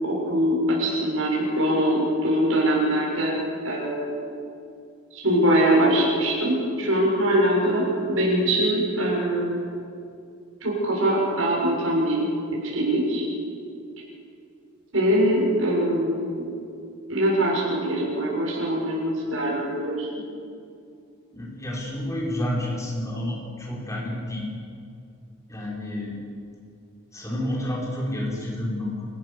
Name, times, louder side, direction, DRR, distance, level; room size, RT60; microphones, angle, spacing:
voice 1, 0.0-3.4 3.6-4.1 5.1-9.6 10.6-12.3 12.5-13.2 14.9-16.5 17.1-20.1, right 1 dB, 80° right, -4 dB, 6.9 m, -23 dB
voice 2, 21.3-24.5 25.5-26.2 27.1-29.1, left 1 dB, 15° left, -3 dB, 5.7 m, -30 dB
28.5 x 15.0 x 7.2 m, 2.4 s
head